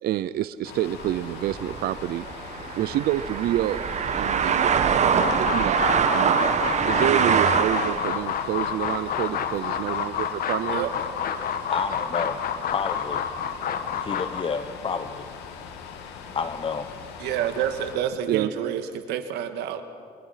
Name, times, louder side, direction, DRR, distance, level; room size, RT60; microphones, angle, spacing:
voice 1, 0.0-2.2 2.7-3.8 4.1-5.8 6.1-10.9 18.3-18.5, right 13 dB, 65° right, 14 dB, 0.6 m, -28 dB
sound 1, 0.6-18.0, left 6 dB, 90° left, 2.6 m, -41 dB
sound 2, 1.0-8.2, right 7 dB, 45° right, 1.3 m, -24 dB
sound 3, 5.1-14.4, left 8 dB, 60° left, 1.6 m, -29 dB
voice 2, 11.7-13.2 13.9-15.3 16.3-16.9, left 5 dB, 30° left, 9 dB, 1.1 m, -30 dB
voice 3, 17.2-19.8, right 9 dB, 90° right, 7 dB, 1.8 m, -28 dB
29.5 x 24.0 x 5.8 m, 2.3 s
cardioid pair, 110°, 17 cm